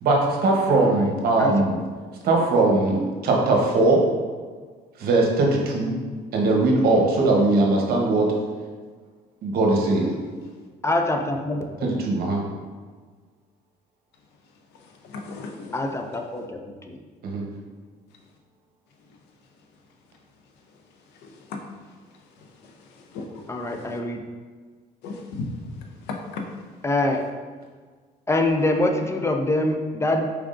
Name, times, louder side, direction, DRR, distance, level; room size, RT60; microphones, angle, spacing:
voice 1, 0.0-1.8 2.2-4.0 5.0-5.9 6.3-8.3 9.4-10.1 11.8-12.4 17.2-17.4, right 2 dB, 65° right, 0 dB, 0.9 m, -20 dB
voice 2, 1.4-1.8 10.8-11.6 12.1-12.2 15.7-16.6 16.9-17.0 23.5-24.2 26.8-27.2 28.3-30.3, left 2 dB, 15° left, 4 dB, 0.4 m, -24 dB
voice 3, 15.0-15.8 21.2-21.6 23.1-23.3 23.7-23.8 25.0-26.4, left 3 dB, 85° left, 3 dB, 0.6 m, -35 dB
4.6 x 3.5 x 2.5 m, 1.5 s
cardioid pair, 110°, 17 cm